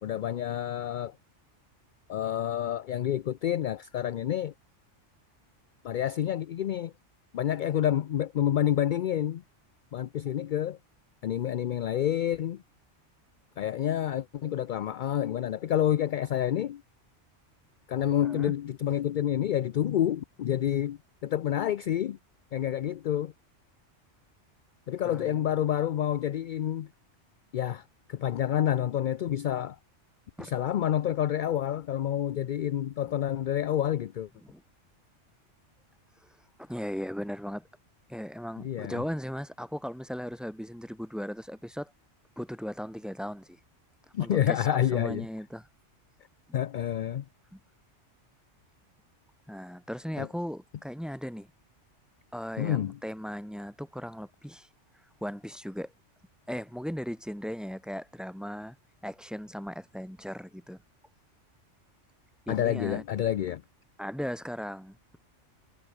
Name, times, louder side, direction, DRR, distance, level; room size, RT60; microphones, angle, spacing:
voice 1, 0.0-1.1 2.1-4.5 5.8-6.9 7.3-9.4 9.9-10.8 11.2-12.6 13.6-16.8 17.9-22.2 22.5-23.3 24.9-26.9 27.5-29.8 30.4-34.3 38.6-39.0 44.1-45.3 46.5-47.2 50.2-50.3 52.6-53.0 62.5-63.6, left 11 dB, 60° left, 0.5 m, -28 dB
voice 2, 18.2-18.5 25.0-25.4 30.4-30.5 34.4-34.6 36.6-37.7 38.1-41.9 42.4-43.6 44.2-45.7 46.5-46.6 47.5-47.6 49.5-51.5 52.3-54.7 55.2-55.9 56.5-58.8 59.0-60.8 62.5-63.0 64.0-65.2, equal, ahead, 2.1 m, -37 dB
omnidirectional pair, 1.2 m